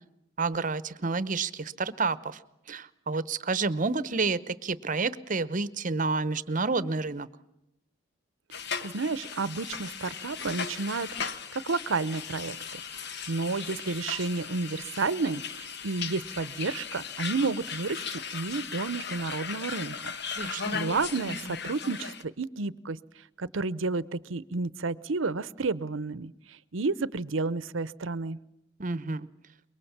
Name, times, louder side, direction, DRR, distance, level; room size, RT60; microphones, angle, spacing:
voice 1, 0.4-2.4 2.7-7.3 20.4-20.8 28.8-29.3, right 4 dB, 40° right, 16 dB, 0.9 m, -29 dB
sound 1, 8.5-22.2, left 6 dB, 60° left, 1.2 m, -37 dB
voice 2, 8.8-12.8 13.3-20.1 20.4-23.0 23.4-28.4, right 3 dB, 75° right, 18 dB, 0.8 m, -31 dB
24.5 x 22.5 x 7.3 m, 0.88 s
head